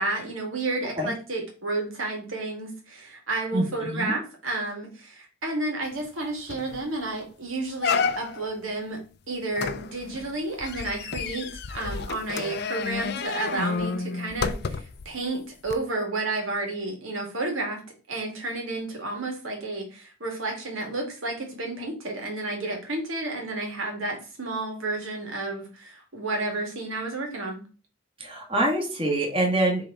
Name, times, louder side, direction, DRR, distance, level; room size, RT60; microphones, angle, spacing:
voice 1, 0.0-9.0 9.3-17.8 18.1-27.6, right 2 dB, 80° right, 1 dB, 2.3 m, -31 dB
voice 2, 3.5-4.1 28.2-29.9, right 1 dB, 25° right, 0 dB, 1.6 m, -25 dB
sound 1, 6.1-6.2 6.5-6.8 7.2-7.3 7.8-8.5 9.6-15.0 15.7-15.8, left 5 dB, 50° left, 0.4 m, -30 dB
6.8 x 3.5 x 3.9 m, 0.36 s
head